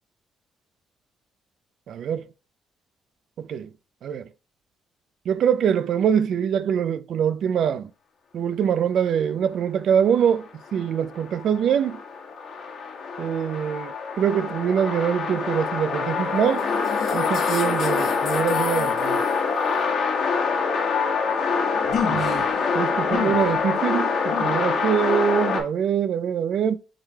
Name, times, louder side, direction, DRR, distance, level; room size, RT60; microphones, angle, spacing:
voice 1, 1.9-2.2 3.4-3.7 4.0-4.2 5.3-7.9 8.3-12.0 13.2-16.7 17.1-19.2 22.0-22.5 22.7-26.8, right 8 dB, 70° right, 0.4 m, -24 dB
sound 1, 10.6-25.6, left 5 dB, 70° left, 1.3 m, -25 dB
7.3 x 3.2 x 2.2 m
cardioid pair, 90°, 0 cm